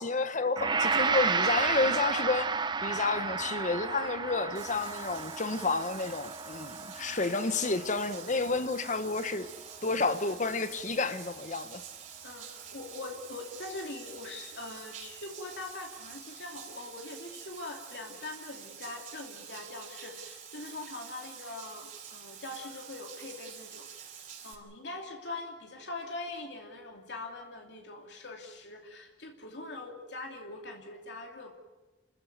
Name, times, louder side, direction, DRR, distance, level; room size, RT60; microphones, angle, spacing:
voice 1, 0.0-2.5 2.8-9.5 9.8-11.8, left 3 dB, 45° left, 1.2 m, -30 dB
Gong, 0.6-9.8, right 5 dB, 25° right, 0.7 m, -32 dB
Bathtub (filling or washing), 4.5-24.5, right 8 dB, 50° right, 4.4 m, -47 dB
voice 2, 7.0-7.4 10.2-10.4 12.2-23.9 24.4-31.6, left 2 dB, 85° left, 2.8 m, -43 dB
29.0 x 14.5 x 9.4 m
head